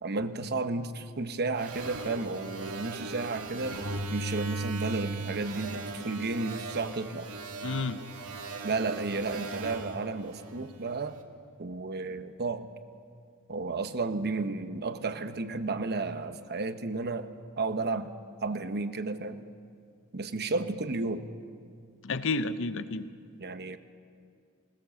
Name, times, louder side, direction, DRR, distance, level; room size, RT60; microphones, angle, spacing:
voice 1, 0.0-3.8 4.1-7.3 8.6-11.2 11.6-12.7 13.5-17.3 17.6-18.1 18.4-19.4 20.1-21.3 23.4-23.8, right 3 dB, 50° right, 10 dB, 1.0 m, -32 dB
sound 1, 1.6-11.0, right 2 dB, 85° right, 1.9 m, -38 dB
voice 2, 7.6-8.0 22.0-23.1, left 3 dB, 60° left, 12 dB, 0.8 m, -30 dB
19.5 x 19.5 x 7.2 m, 2.3 s
head